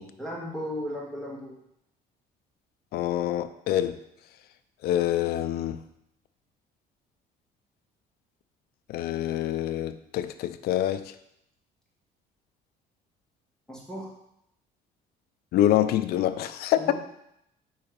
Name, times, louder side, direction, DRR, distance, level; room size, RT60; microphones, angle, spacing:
voice 1, 0.2-1.5 13.7-14.1 16.8-16.9, equal, 5° left, -4 dB, 1.7 m, -35 dB
voice 2, 2.9-3.9 4.8-5.8 8.9-11.0 15.5-16.9, left 12 dB, 70° left, 11 dB, 0.4 m, -26 dB
4.8 x 4.0 x 5.2 m, 0.78 s
cardioid pair, 110°, 17 cm